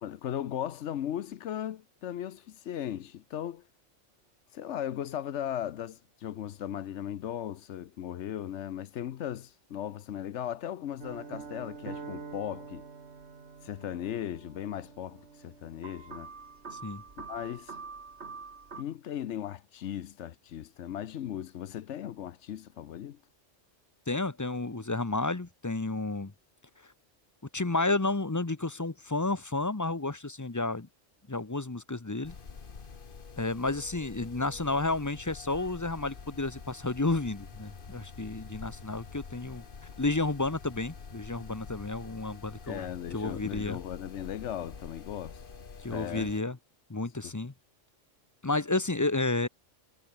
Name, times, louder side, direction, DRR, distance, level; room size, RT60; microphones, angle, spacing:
voice 1, 0.0-3.6 4.5-12.9 13.6-16.3 17.3-17.7 18.8-23.2 42.7-45.4 45.9-46.3 47.2-47.3, left 10 dB, 70° left, 1.0 m, -37 dB
sound 1, 11.0-18.8, right 5 dB, 60° right, 2.1 m, -45 dB
voice 2, 24.1-26.3 27.5-30.9 31.3-32.3 33.4-39.6 40.0-42.8 43.1-43.8 45.8-46.6 46.9-47.5 48.4-49.5, left 2 dB, 15° left, 0.8 m, -31 dB
sound 2, 32.2-46.4, left 5 dB, 45° left, 1.5 m, -47 dB
omnidirectional pair, 1.3 m